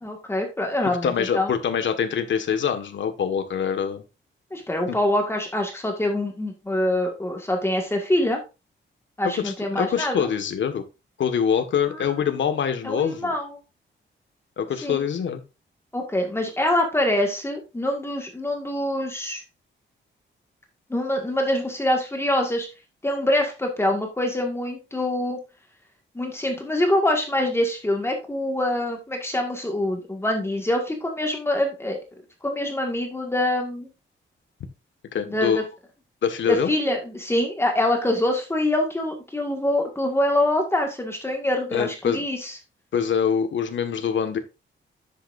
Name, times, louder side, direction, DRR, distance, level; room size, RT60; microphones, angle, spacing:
voice 1, 0.0-1.5 4.5-8.4 9.2-10.3 11.8-12.0 12.8-13.6 14.8-15.0 15.9-19.4 20.9-22.7 23.0-25.4 26.2-32.0 32.4-33.9 35.3-35.6 36.5-42.5, left 1 dB, 10° left, 2 dB, 1.8 m, -25 dB
voice 2, 1.0-4.0 4.9-5.0 9.4-10.8 11.2-13.3 14.6-15.4 35.1-35.7 36.2-36.7 41.7-42.2 42.9-44.4, left 7 dB, 70° left, 7 dB, 1.6 m, -24 dB
10.0 x 8.1 x 2.6 m, 0.27 s
wide cardioid pair, 150°, 20 cm